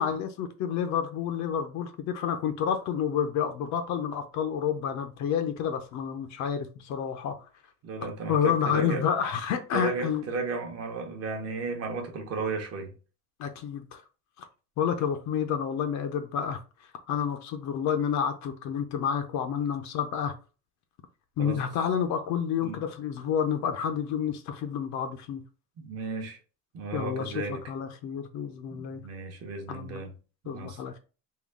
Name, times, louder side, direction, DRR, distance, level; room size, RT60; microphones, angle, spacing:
voice 1, 0.0-7.4 8.3-10.2 13.4-14.0 14.8-16.6 17.1-20.3 21.4-25.4 26.9-29.0 29.7-30.0 30.5-31.0, left 8 dB, 50° left, 0.5 m, -29 dB
voice 2, 7.8-9.1 9.7-12.9 21.4-21.6 22.6-22.8 25.8-26.4 26.7-27.6 28.7-30.1 30.4-30.8, right 3 dB, 40° right, 0.8 m, -34 dB
3.7 x 2.2 x 3.5 m
cardioid pair, 165°, 38 cm